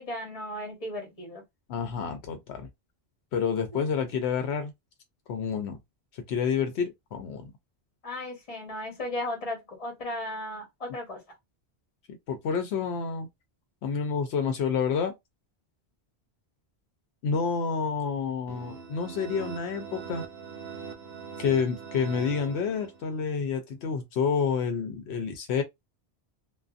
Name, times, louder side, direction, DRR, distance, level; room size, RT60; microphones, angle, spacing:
voice 1, 0.0-1.4 8.0-11.2, left 1 dB, 35° left, 1.1 m, -35 dB
voice 2, 1.7-2.7 3.3-4.7 5.3-5.8 6.3-7.5 12.3-13.3 13.8-15.1 17.2-20.2 21.4-25.6, left 6 dB, 80° left, 0.8 m, -29 dB
sound 1, 18.5-23.2, right 6 dB, 65° right, 0.8 m, -41 dB
2.5 x 2.3 x 2.4 m
omnidirectional pair, 1.1 m